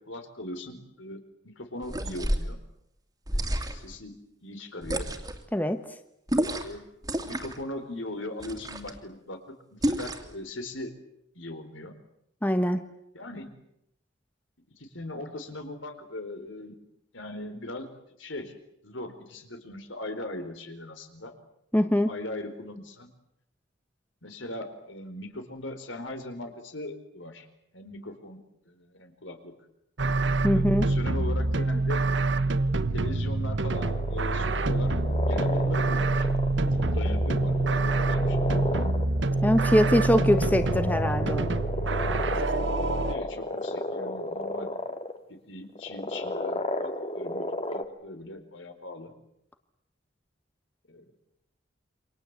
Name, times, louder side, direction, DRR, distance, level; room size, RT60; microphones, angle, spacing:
voice 1, 0.1-2.6 3.3-5.1 6.6-6.9 7.2-10.9 11.3-12.0 13.1-13.5 14.8-16.8 17.1-17.9 18.2-18.5 18.8-21.3 22.1-23.1 24.2-27.5 27.7-28.4 28.6-29.5 30.5-32.0 32.9-34.9 35.2-36.3 36.5-38.4 43.0-44.7 45.3-49.1 50.9-51.0, left 1 dB, 75° left, 7 dB, 4.4 m, -39 dB
sound 1, 1.8-2.5 3.3-3.9 4.8-5.4 6.3-6.8 7.0-7.6 8.4-9.0 9.8-10.3, equal, 20° right, 2.6 m, -30 dB
voice 2, 12.4-12.8 21.7-22.1 30.4-30.9 39.4-41.5, equal, 10° left, 9 dB, 1.2 m, -23 dB
sound 2, 30.0-43.2, right 2 dB, 70° right, 1.2 m, -26 dB
sound 3, 33.7-45.2 45.7-47.8, left 1 dB, 30° left, 1.9 m, -34 dB
28.5 x 25.5 x 8.2 m, 0.79 s
head